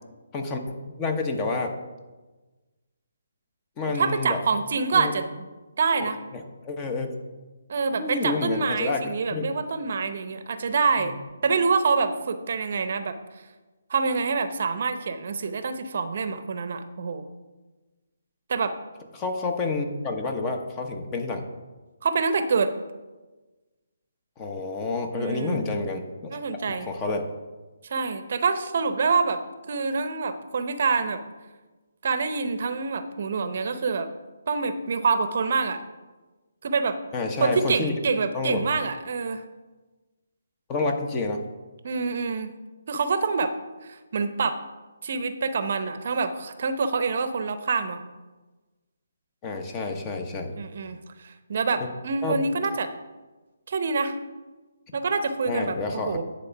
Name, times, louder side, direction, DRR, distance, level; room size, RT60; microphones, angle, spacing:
voice 1, 0.3-1.7 3.8-4.4 4.9-5.1 6.0-7.2 8.0-9.0 9.3-9.5 11.0-11.1 19.1-21.4 24.4-26.0 26.7-27.3 37.1-37.9 38.3-38.7 40.7-41.4 49.4-50.5 52.2-52.4 55.5-56.2, left 3 dB, 20° left, 4 dB, 0.9 m, -29 dB
voice 2, 4.0-5.5 5.8-6.2 7.7-11.1 11.4-13.2 13.9-17.3 18.5-18.7 22.0-22.7 25.1-25.6 26.3-26.9 27.8-29.4 29.7-31.2 32.0-34.1 34.5-35.8 36.6-37.0 37.4-39.4 41.8-42.5 42.9-43.5 43.8-44.6 45.0-48.0 50.6-52.9 53.7-54.2 54.9-56.2, right 4 dB, 55° right, 9 dB, 0.7 m, -26 dB
9.8 x 4.2 x 5.8 m, 1.2 s
figure-of-eight pair, 145°, 0 cm